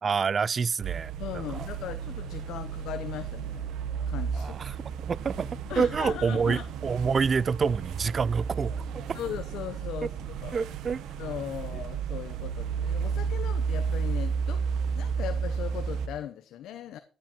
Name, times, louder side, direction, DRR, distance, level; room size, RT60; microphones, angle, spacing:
voice 1, 0.0-1.7 4.3-4.8 5.1-5.5 5.8-8.7 10.5-11.0, right 5 dB, 45° right, 0.4 m, -27 dB
sound 1, 0.8-16.1, right 6 dB, 85° right, 1.3 m, -32 dB
voice 2, 1.2-3.7 4.1-4.8 5.7-6.7 9.1-10.6 11.2-14.6 14.9-17.0, left 11 dB, 85° left, 0.9 m, -38 dB
14.5 x 8.4 x 4.5 m
cardioid pair, 90°, 0 cm